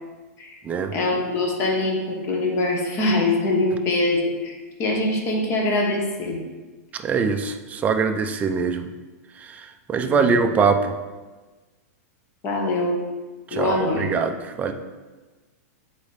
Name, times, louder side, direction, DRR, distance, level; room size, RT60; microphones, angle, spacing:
voice 1, 0.9-6.4 10.0-10.4 12.4-13.0 13.5-14.2, left 2 dB, 30° left, 1 dB, 1.2 m, -23 dB
voice 2, 7.0-8.9 9.5-9.6 9.9-10.9 13.5-14.3 14.6-14.7, right 5 dB, 15° right, 6 dB, 0.4 m, -22 dB
8.6 x 4.1 x 3.3 m, 1.2 s
supercardioid pair, 145°, 9 cm